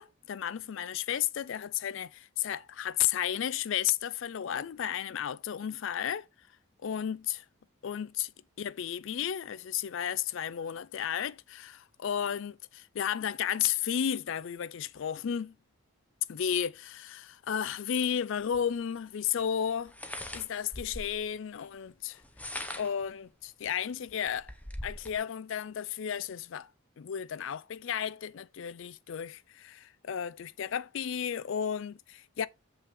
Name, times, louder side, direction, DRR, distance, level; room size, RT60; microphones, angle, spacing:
voice 1, 0.0-6.3 6.8-7.4 7.8-8.3 8.6-15.6 16.3-24.5 24.8-26.7 27.0-32.5, left 9 dB, 60° left, 0.4 m, -33 dB
sound 1, 18.5-18.6 19.9-21.2 22.2-23.1 23.7-23.8 24.1-25.2, left 1 dB, 5° left, 0.6 m, -41 dB
6.9 x 5.5 x 3.4 m
head